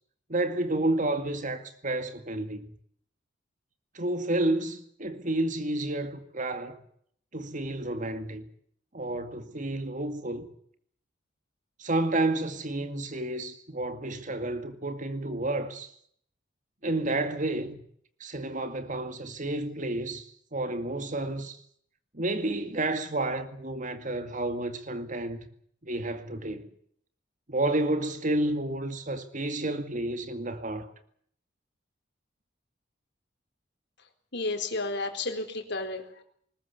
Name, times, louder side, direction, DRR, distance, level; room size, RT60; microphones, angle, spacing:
voice 1, 0.3-2.7 3.9-6.8 7.3-8.5 8.9-10.5 11.8-15.9 16.8-17.8 18.2-21.6 22.1-25.4 25.8-26.7 27.5-30.9, right 2 dB, 40° right, 2.3 m, -30 dB
voice 2, 34.3-36.2, left 2 dB, 60° left, 4.1 m, -32 dB
21.0 x 19.5 x 8.4 m
head